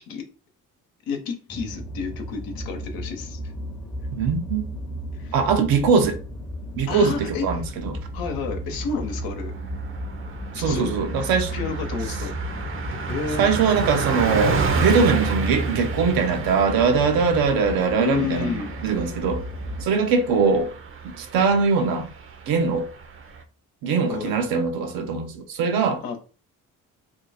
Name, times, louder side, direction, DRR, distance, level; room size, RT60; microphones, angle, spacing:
voice 1, 1.1-3.4 5.1-5.4 6.9-7.6 8.1-9.5 10.6-10.9 11.5-12.4 13.1-13.5 18.0-18.7 24.1-24.4 26.0-26.2, left 5 dB, 85° left, 0.9 m, -30 dB
sound 1, 1.5-19.8, equal, 5° left, 0.6 m, -34 dB
voice 2, 4.1-4.7 5.3-6.2 6.8-8.0 10.5-11.5 13.4-19.4 19.8-20.7 21.2-22.1 22.5-22.9 23.8-26.0, right 5 dB, 85° right, 0.7 m, -21 dB
Car passing by, 8.0-8.4 8.7-8.9 9.2-23.4, right 4 dB, 40° right, 0.6 m, -31 dB
2.7 x 2.3 x 4.1 m
supercardioid pair, 70°, 35 cm